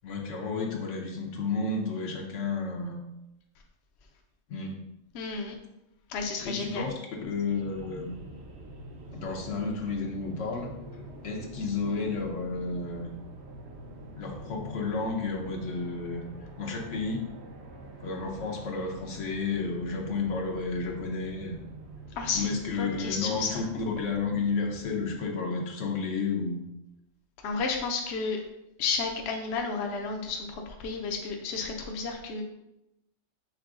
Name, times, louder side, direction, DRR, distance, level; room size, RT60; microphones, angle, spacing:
voice 1, 0.0-3.0 4.5-4.8 6.4-6.9 7.2-8.1 9.1-10.7 11.2-13.1 14.2-16.2 16.6-17.3 18.0-21.6 22.3-26.6, left 4 dB, 85° left, 0 dB, 1.2 m, -32 dB
voice 2, 5.1-5.5 6.1-6.9 22.2-23.6 27.4-28.4 28.8-32.4, left 4 dB, 70° left, 2 dB, 0.8 m, -32 dB
sound 1, 7.5-25.3, right 1 dB, 70° right, 0.9 m, -46 dB
5.9 x 3.5 x 2.4 m, 0.88 s
omnidirectional pair, 1.2 m